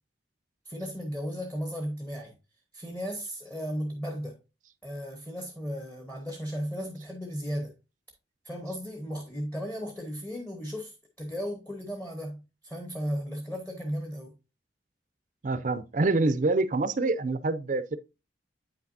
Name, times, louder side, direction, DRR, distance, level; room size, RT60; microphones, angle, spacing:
voice 1, 0.6-2.3 2.7-4.3 4.8-7.7 8.4-14.3, equal, 10° left, 0.9 m, -35 dB
voice 2, 15.4-18.0, right 3 dB, 45° right, 0.4 m, -26 dB
8.5 x 5.8 x 2.6 m
head